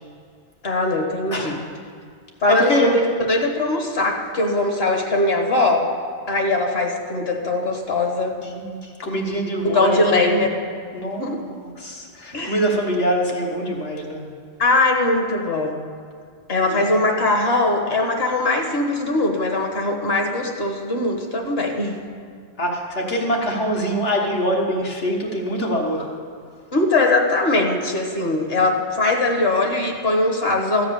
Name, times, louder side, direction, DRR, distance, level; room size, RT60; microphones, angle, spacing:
voice 1, 0.6-1.6 2.4-5.9 6.3-8.3 9.6-10.6 11.2-11.4 12.3-12.6 14.6-15.8 16.5-22.0 26.7-30.8, left 2 dB, 60° left, 2 dB, 1.4 m, -21 dB
voice 2, 2.5-2.9 8.4-10.4 10.9-14.3 16.6-16.8 22.6-26.1, equal, 80° left, -1 dB, 1.9 m, -24 dB
14.0 x 4.8 x 8.7 m, 2.1 s
omnidirectional pair, 1.2 m